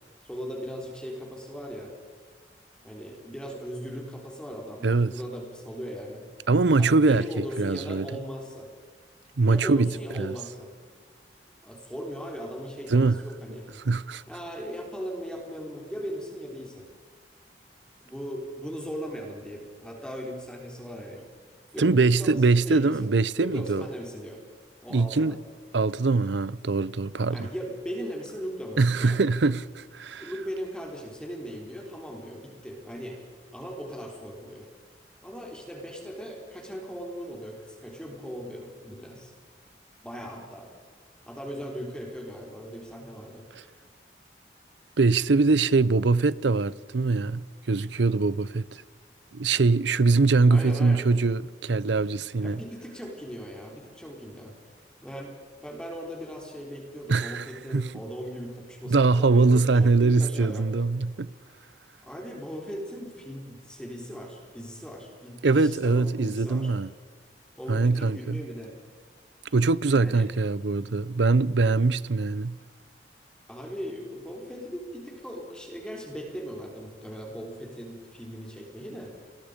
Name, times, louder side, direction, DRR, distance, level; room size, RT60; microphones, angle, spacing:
voice 1, 0.2-1.9 2.8-6.2 6.8-8.7 9.5-10.7 11.6-13.7 14.3-16.9 18.0-21.2 21.7-23.1 23.4-24.4 24.8-25.4 27.3-29.2 30.2-33.2 33.5-34.7 35.2-39.3 40.0-40.7 41.3-43.7 50.5-51.1 52.4-54.6 55.0-60.7 62.0-66.7 67.6-68.7 69.9-70.3 73.5-79.1, equal, 5° left, 3.8 m, -38 dB
voice 2, 6.5-8.1 9.4-9.9 10.2-10.3 12.9-13.2 13.9-14.2 21.8-23.8 24.9-25.4 25.7-27.5 28.8-30.3 45.0-48.8 49.3-52.6 57.1-57.5 57.7-57.9 58.9-61.3 65.4-66.9 67.7-68.4 69.5-72.6, right 3 dB, 80° right, 0.6 m, -23 dB
28.5 x 22.0 x 5.2 m
head